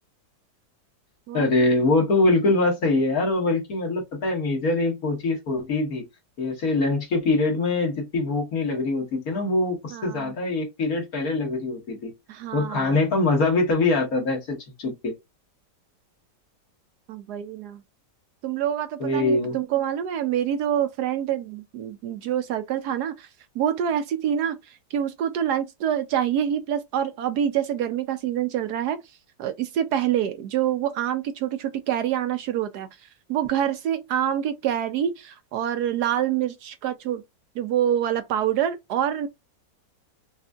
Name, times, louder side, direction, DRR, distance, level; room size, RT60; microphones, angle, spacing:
voice 1, 1.3-6.0 6.4-12.1 12.5-15.1 19.0-19.6, left 2 dB, 55° left, 1.8 m, -23 dB
voice 2, 9.9-10.3 12.3-13.0 17.1-17.8 18.4-23.3 23.6-29.0 29.4-32.9 33.3-37.2 37.6-39.3, right 10 dB, 75° right, 1.0 m, -26 dB
4.9 x 2.5 x 2.3 m
omnidirectional pair, 1.9 m